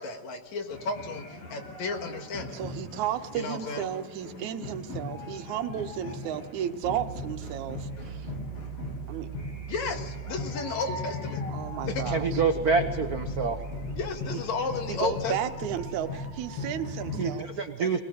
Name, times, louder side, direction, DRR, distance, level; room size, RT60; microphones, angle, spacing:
voice 1, 0.0-2.6 3.3-3.9 9.7-11.4 11.9-12.2 13.9-15.4, left 4 dB, 75° left, 5 dB, 3.0 m, -33 dB
sound 1, 0.7-17.4, left 3 dB, 60° left, 4.7 m, -38 dB
voice 2, 2.5-8.3 9.1-9.3 11.5-12.4 14.9-18.0, right 10 dB, 85° right, 10 dB, 2.4 m, -33 dB
sound 2, 6.8-16.4, right 6 dB, 25° right, 1.1 m, -41 dB
voice 3, 12.1-13.6 17.2-18.0, right 5 dB, 65° right, 6 dB, 0.9 m, -26 dB
22.0 x 19.0 x 7.7 m, 1.1 s
omnidirectional pair, 3.3 m